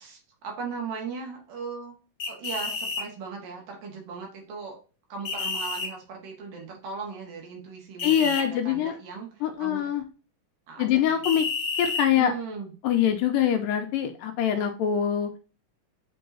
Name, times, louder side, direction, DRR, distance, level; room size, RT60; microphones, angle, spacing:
voice 1, 0.0-1.9 2.3-4.8 5.1-9.9 10.7-11.0 11.4-11.5 12.2-12.7, right 5 dB, 65° right, 1 dB, 3.4 m, -38 dB
sound 1, 2.2-3.0 5.2-5.9 8.0-8.4 11.2-12.1, left 4 dB, 50° left, 1.4 m, -30 dB
voice 2, 8.0-9.0 9.4-10.0 10.8-11.5 11.8-12.3 12.8-15.3, left 9 dB, 80° left, 6 dB, 2.2 m, -24 dB
7.6 x 4.6 x 2.7 m, 0.35 s
omnidirectional pair, 4.2 m